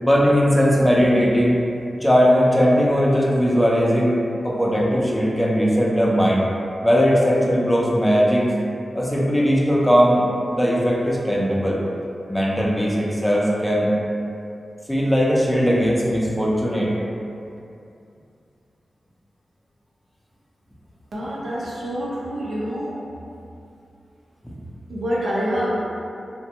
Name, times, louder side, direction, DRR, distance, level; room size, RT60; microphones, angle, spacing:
voice 1, 0.0-1.6 2.0-6.5 6.8-8.5 8.9-11.8 12.3-13.9 14.9-16.9 24.4-24.6, equal, 10° left, -4 dB, 0.5 m, -19 dB
voice 2, 21.1-23.0 24.9-25.8, equal, 75° right, -7 dB, 0.6 m, -26 dB
2.5 x 2.2 x 2.8 m, 2.6 s
cardioid pair, 60°, 0 cm